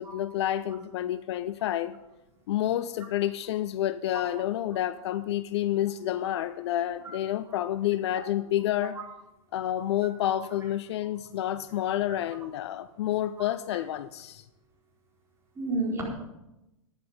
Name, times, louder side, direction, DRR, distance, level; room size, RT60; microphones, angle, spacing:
voice 1, 0.0-2.0 2.5-8.9 9.5-14.4, left 12 dB, 50° left, 0.5 m, -29 dB
voice 2, 13.4-13.8 15.6-16.0, right 3 dB, 15° right, 4.4 m, -32 dB
11.5 x 10.0 x 5.1 m
hypercardioid pair, 110°, 17 cm